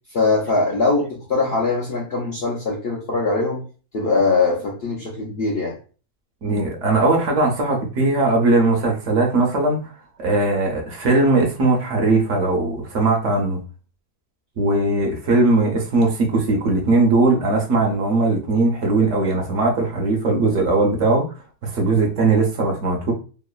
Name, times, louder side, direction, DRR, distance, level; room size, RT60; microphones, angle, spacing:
voice 1, 0.1-3.6 3.9-5.7, left 3 dB, 65° left, -2 dB, 0.6 m, -21 dB
voice 2, 6.4-9.9 10.2-13.6 14.6-21.2 21.6-23.1, right 2 dB, 65° right, 1 dB, 0.9 m, -19 dB
3.0 x 2.1 x 2.2 m, 0.37 s
omnidirectional pair, 1.5 m